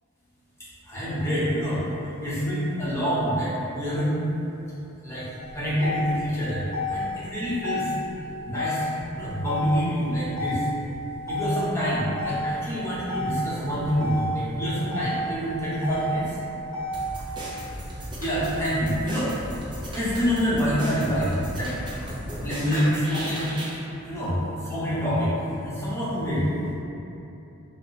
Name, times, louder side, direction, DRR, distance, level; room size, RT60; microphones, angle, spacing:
voice 1, 0.9-1.8 2.2-4.2 5.0-5.2 5.5-6.6 6.9-7.9 8.5-8.8 9.1-10.6 11.3-16.2 18.2-19.3 19.9-21.7 22.4-23.5 24.1-24.4 24.6-25.3 25.6-26.4, equal, 10° left, -10 dB, 0.7 m, -26 dB
Motor vehicle (road), 5.4-17.4, left 1 dB, 55° left, 0.6 m, -32 dB
sound 1, 16.9-23.8, equal, 20° right, 0.4 m, -35 dB
2.9 x 2.0 x 3.9 m, 2.9 s
head